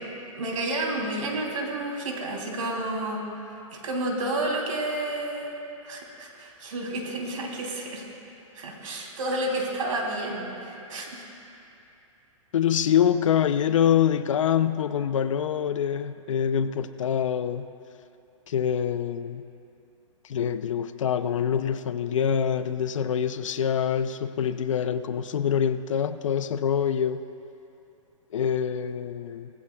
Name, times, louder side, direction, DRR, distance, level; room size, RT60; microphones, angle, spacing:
voice 1, 0.0-3.2 3.7-5.5 5.8-8.0 8.5-11.2, right 1 dB, 80° right, -1 dB, 3.2 m, -30 dB
voice 2, 12.5-17.7 18.5-19.4 20.2-27.2 28.3-29.5, left 8 dB, 70° left, 12 dB, 0.6 m, -25 dB
18.5 x 15.5 x 2.3 m, 2.7 s
hypercardioid pair, 170°, 17 cm